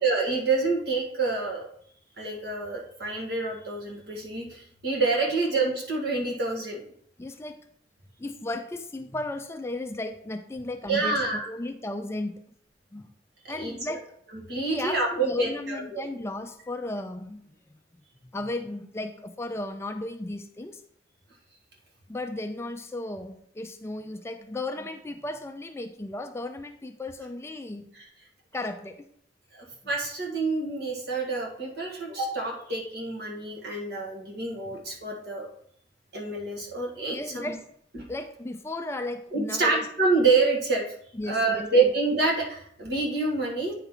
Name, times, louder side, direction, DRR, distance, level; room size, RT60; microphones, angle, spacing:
voice 1, 0.0-1.7 2.2-6.8 10.9-11.5 13.4-13.7 14.5-16.1 28.0-28.1 29.5-35.5 36.1-37.5 37.9-38.0 39.3-40.8 41.3-43.7, right 3 dB, 60° right, -1 dB, 1.8 m, -27 dB
voice 2, 7.2-7.6 8.2-12.4 12.9-13.1 13.5-14.1 14.7-17.5 18.2-20.8 22.1-27.9 28.5-29.0 34.7-34.8 37.1-37.6 38.1-39.8 41.1-41.9, left 2 dB, 15° left, 7 dB, 0.4 m, -35 dB
9.0 x 4.5 x 3.8 m, 0.66 s
head